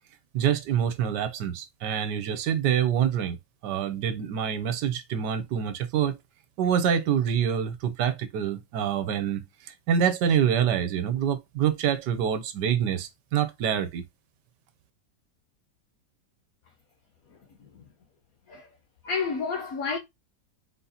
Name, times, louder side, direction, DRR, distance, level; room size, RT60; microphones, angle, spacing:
voice 1, 0.3-3.4 3.6-6.2 6.6-14.0, right 8 dB, 75° right, 1.4 m, -26 dB
voice 2, 19.0-20.0, left 5 dB, 60° left, 1.3 m, -29 dB
4.3 x 4.0 x 2.7 m
omnidirectional pair, 1.9 m